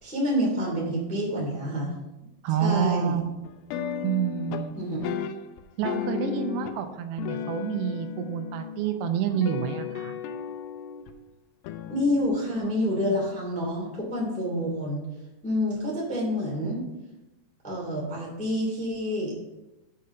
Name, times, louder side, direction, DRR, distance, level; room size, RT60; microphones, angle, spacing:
voice 1, 0.0-1.9 2.6-3.1 4.8-5.0 11.9-15.0 15.4-16.8 17.6-19.4, equal, 5° left, -4 dB, 1.3 m, -28 dB
voice 2, 2.4-3.2 4.0-4.7 5.8-10.2, right 8 dB, 80° right, 7 dB, 2.8 m, -28 dB
sound 1, 3.4-4.7 5.0-6.8 7.2-8.9 9.3-11.1 11.7-12.3, left 8 dB, 85° left, 2.1 m, -34 dB
7.1 x 5.1 x 6.7 m, 0.98 s
omnidirectional pair, 4.9 m